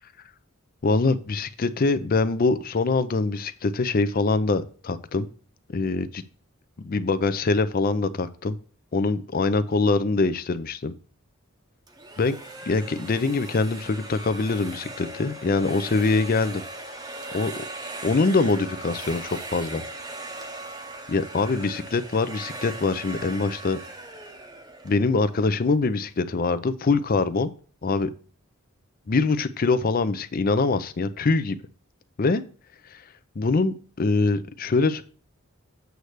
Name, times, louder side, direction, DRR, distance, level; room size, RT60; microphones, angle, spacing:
voice 1, 0.8-5.3 5.7-6.2 6.8-8.6 8.9-10.9 12.2-12.4 12.7-16.6 17.3-17.6 18.0-19.8 21.1-23.8 24.8-27.5 27.8-28.1 29.1-31.6 32.2-32.4 32.9-33.0 33.4-35.0, left 3 dB, 40° left, 13 dB, 0.5 m, -24 dB
sound 1, 11.9-25.7, right 2 dB, 20° right, 0.7 m, -39 dB
8.0 x 3.3 x 6.4 m, 0.42 s
head